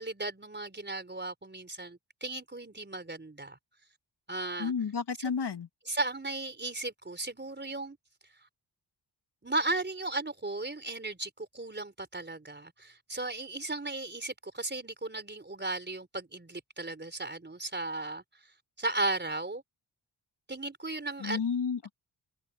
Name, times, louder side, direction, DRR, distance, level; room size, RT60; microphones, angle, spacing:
voice 1, 0.0-3.6 4.3-4.7 5.9-8.0 9.4-18.2 18.8-19.6 20.5-21.4, right 2 dB, 25° right, 4.4 m, -35 dB
voice 2, 4.6-5.7 21.2-21.9, left 6 dB, 60° left, 2.5 m, -31 dB
cardioid pair, 55°, 46 cm